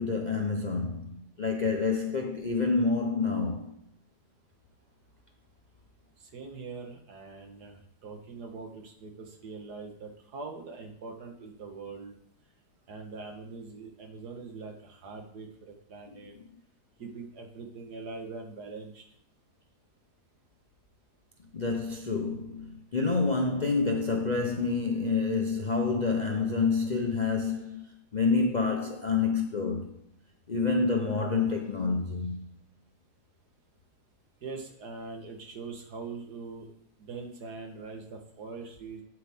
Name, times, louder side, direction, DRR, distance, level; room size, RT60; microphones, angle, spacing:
voice 1, 0.0-3.8 16.3-16.4 21.5-27.9 28.1-30.0 30.5-32.5, left 4 dB, 45° left, 0.6 m, -28 dB
voice 2, 6.2-12.2 12.9-16.3 17.0-19.0 34.4-36.7 37.0-39.0, right 4 dB, 70° right, 1.9 m, -42 dB
9.1 x 7.9 x 3.6 m
omnidirectional pair, 1.8 m